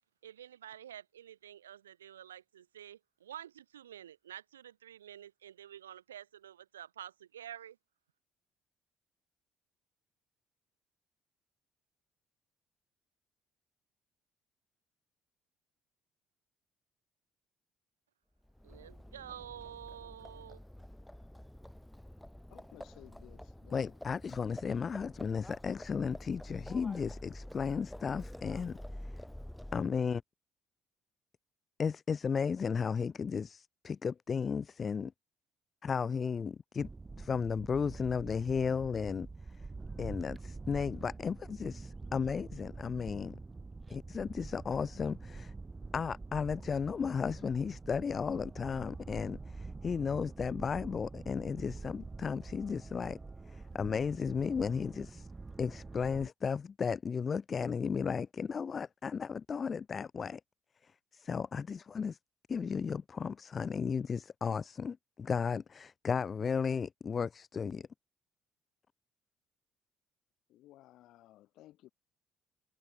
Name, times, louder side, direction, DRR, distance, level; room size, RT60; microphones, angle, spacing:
voice 1, 0.2-7.8 18.6-20.6, right 10 dB, 85° right, 2.5 m, -49 dB
Livestock farm animals working animals, 18.5-30.1, left 1 dB, 5° left, 2.6 m, -48 dB
voice 2, 22.5-24.0 70.5-71.9, left 15 dB, 65° left, 5.4 m, -58 dB
voice 3, 23.7-28.8 29.7-30.2 31.8-35.1 35.8-36.9 37.2-39.3 40.0-43.4 43.9-45.5 45.9-53.2 53.5-55.3 55.6-60.4 60.8-62.2 62.5-67.9, left 6 dB, 40° left, 0.5 m, -34 dB
sound 1, 36.8-56.3, right 3 dB, 25° right, 0.7 m, -46 dB
figure-of-eight pair, 50°, 0 cm